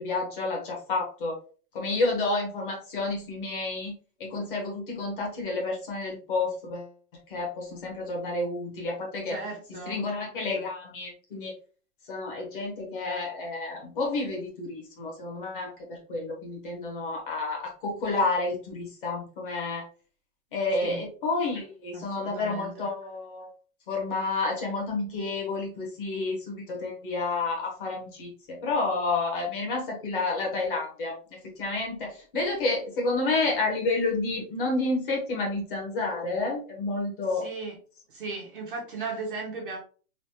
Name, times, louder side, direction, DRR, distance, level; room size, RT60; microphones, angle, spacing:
voice 1, 0.0-1.4 1.7-3.9 4.2-6.9 7.3-9.4 9.9-11.5 12.1-19.8 20.5-23.5 23.9-31.2 31.6-37.5, left 3 dB, 35° left, 0 dB, 0.9 m, -30 dB
voice 2, 9.3-10.1 20.9-21.0 21.9-22.9 37.3-37.8 38.1-39.8, right 4 dB, 35° right, -1 dB, 0.6 m, -37 dB
3.3 x 2.5 x 2.7 m, 0.39 s
supercardioid pair, 180°, 46 cm